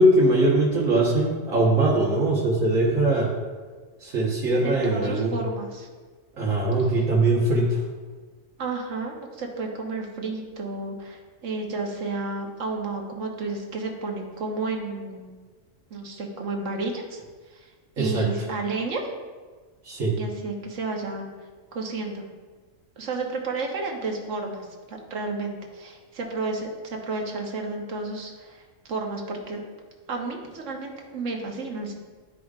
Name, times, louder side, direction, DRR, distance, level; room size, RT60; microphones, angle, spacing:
voice 1, 0.0-3.3 4.0-5.4 6.4-7.8 18.0-18.2 19.8-20.1, right 1 dB, 85° right, -6 dB, 1.6 m, -21 dB
voice 2, 4.6-5.9 8.6-15.3 15.9-17.2 17.5-17.7 18.0-19.1 20.1-21.3 21.7-22.2 23.0-24.6 24.9-28.6 28.9-29.6 30.1-31.9, right 3 dB, 70° right, 2 dB, 1.4 m, -31 dB
12.0 x 4.9 x 2.4 m, 1.4 s
omnidirectional pair, 1.3 m